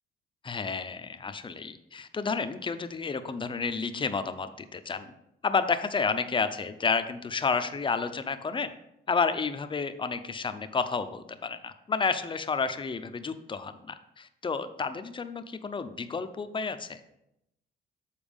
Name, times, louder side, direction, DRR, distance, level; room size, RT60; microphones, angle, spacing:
voice 1, 0.4-5.1 5.4-8.7 9.1-17.0, left 5 dB, 25° left, 10 dB, 0.6 m, -31 dB
7.2 x 4.4 x 5.2 m, 0.85 s
cardioid pair, 90°, 20 cm